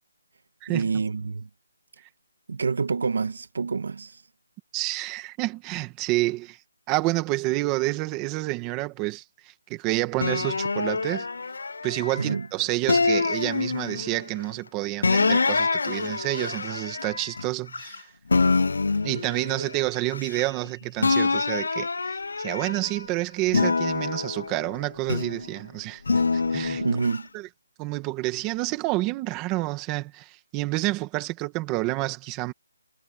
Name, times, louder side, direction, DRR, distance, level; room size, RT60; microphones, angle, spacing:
voice 1, 0.7-1.5 2.5-4.2 12.2-12.5 26.8-27.3, right 4 dB, 55° right, 1.5 m, -27 dB
voice 2, 4.7-6.6 6.9-11.3 11.8-18.1 19.0-26.0 26.3-26.8 27.3-27.5 27.8-32.5, right 20 dB, 10° right, 1.9 m, -29 dB
sound 1, 10.2-12.3 12.9-14.2 15.0-18.0 18.3-20.7 21.0-23.0 23.5-25.5 26.1-27.2, left 4 dB, 65° left, 0.4 m, -26 dB
hypercardioid pair, 175°, 0 cm